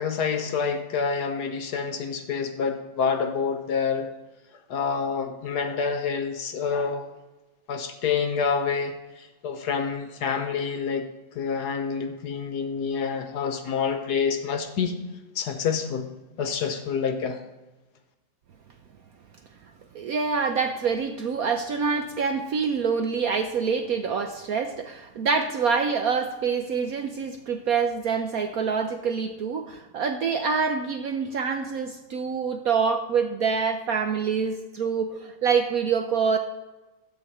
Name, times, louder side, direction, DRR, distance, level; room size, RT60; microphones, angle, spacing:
voice 1, 0.0-4.1 4.7-7.1 7.7-11.1 11.3-15.0 15.3-16.1 16.4-17.4, left 6 dB, 60° left, 7 dB, 1.3 m, -27 dB
voice 2, 19.9-36.4, right 5 dB, 65° right, 6 dB, 0.9 m, -26 dB
13.0 x 4.6 x 7.8 m, 1.1 s
omnidirectional pair, 2.1 m